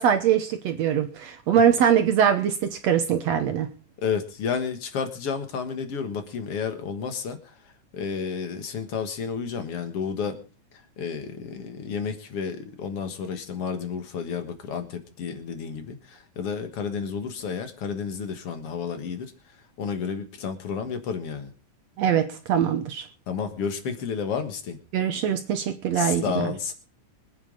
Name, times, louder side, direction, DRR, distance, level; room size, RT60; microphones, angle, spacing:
voice 1, 0.0-3.7 22.0-23.1 24.9-26.5, right 8 dB, 65° right, 8 dB, 1.8 m, -22 dB
voice 2, 4.0-7.4 7.9-10.4 11.0-19.3 19.8-21.5 23.3-24.8 25.9-26.7, left 6 dB, 50° left, 8 dB, 2.1 m, -31 dB
24.5 x 9.1 x 3.9 m, 0.36 s
omnidirectional pair, 3.8 m